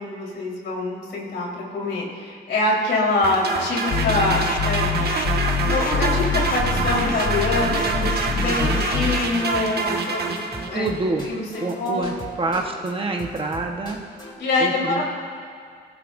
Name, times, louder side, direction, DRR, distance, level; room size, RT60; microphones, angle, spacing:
voice 1, 0.0-4.9 5.7-10.4 10.7-10.9 11.3-11.4 11.8-12.0 14.4-15.0, left 2 dB, 70° left, -3 dB, 4.1 m, -24 dB
sound 1, 3.2-11.0, right 4 dB, 60° right, 1.4 m, -26 dB
sound 2, 3.9-9.3, left 6 dB, 50° left, 1.0 m, -25 dB
sound 3, 5.8-12.9 13.2-14.3, left 1 dB, 25° left, 3.0 m, -39 dB
voice 2, 8.5-8.8 10.7-11.3 11.6-14.0 14.6-15.0, right 3 dB, 30° right, 2 dB, 1.3 m, -27 dB
26.0 x 16.0 x 2.6 m, 2.2 s
cardioid pair, 115°, 19 cm